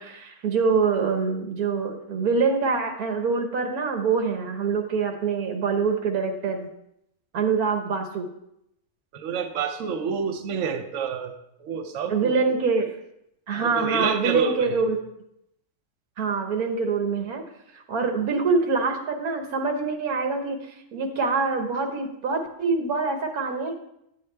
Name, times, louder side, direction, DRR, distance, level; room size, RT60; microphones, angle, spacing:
voice 1, 0.0-6.7 7.3-8.3 12.1-12.9 13.5-15.0 16.2-17.4 17.7-23.8, right 4 dB, 85° right, 4 dB, 1.6 m, -25 dB
voice 2, 9.1-11.3 11.6-12.4 13.6-14.8, right 6 dB, 65° right, 5 dB, 1.0 m, -28 dB
10.0 x 8.1 x 3.3 m, 0.78 s
omnidirectional pair, 1.5 m